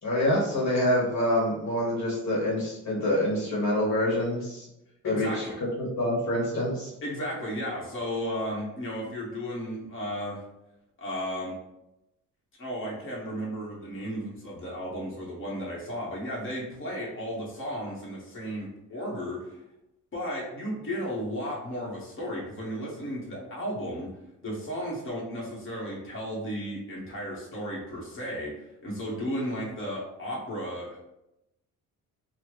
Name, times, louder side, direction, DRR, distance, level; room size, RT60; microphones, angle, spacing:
voice 1, 0.0-4.7 5.0-5.4 5.8-6.9, left 1 dB, 65° left, -4 dB, 1.3 m, -26 dB
voice 2, 5.0-5.6 7.0-10.4 11.0-11.6 12.6-19.6 20.1-24.1 24.4-31.1, equal, 45° left, -4 dB, 1.4 m, -34 dB
4.2 x 2.2 x 3.1 m, 0.87 s
cardioid pair, 90°, 30 cm